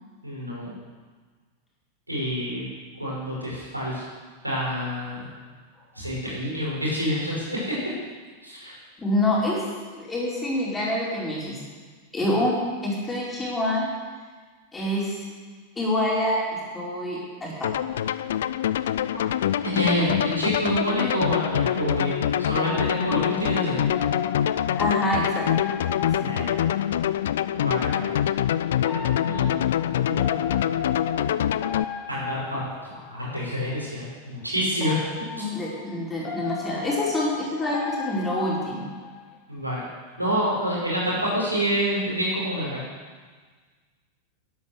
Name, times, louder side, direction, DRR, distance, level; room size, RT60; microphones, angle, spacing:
voice 1, 0.2-0.7 2.1-2.7 3.0-4.0 4.4-5.3 5.9-7.8 8.4-8.7 19.6-23.8 26.1-26.6 27.5-28.1 28.9-29.6 30.0-30.4 32.1-32.7 33.1-35.0 35.4-35.5 39.5-39.8 40.2-42.8, equal, 85° right, -5 dB, 5.5 m, -27 dB
voice 2, 9.0-9.6 9.9-11.6 12.1-12.6 12.8-13.9 14.7-15.2 15.8-16.4 16.7-17.7 24.8-25.8 26.2-26.3 35.3-38.9, left 1 dB, 15° left, -5 dB, 5.0 m, -26 dB
trance lead, 17.6-31.8, left 10 dB, 60° left, 0.4 m, -25 dB
sound 1, 22.6-27.2 28.8-33.4 34.7-39.4, left 5 dB, 30° left, 1.9 m, -36 dB
13.0 x 10.5 x 6.9 m, 1.5 s
figure-of-eight pair, 90°, 0 cm